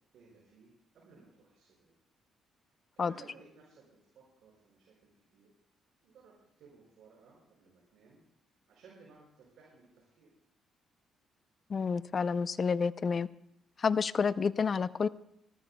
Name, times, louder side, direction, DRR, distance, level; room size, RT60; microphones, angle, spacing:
voice 1, 0.1-1.9 2.9-5.5 6.0-8.2 8.7-10.3, right 4 dB, 75° right, -5 dB, 5.3 m, -59 dB
voice 2, 11.7-13.3 13.8-15.1, left 5 dB, 40° left, 16 dB, 0.5 m, -29 dB
28.5 x 13.0 x 2.2 m, 0.78 s
cardioid pair, 90°, 0 cm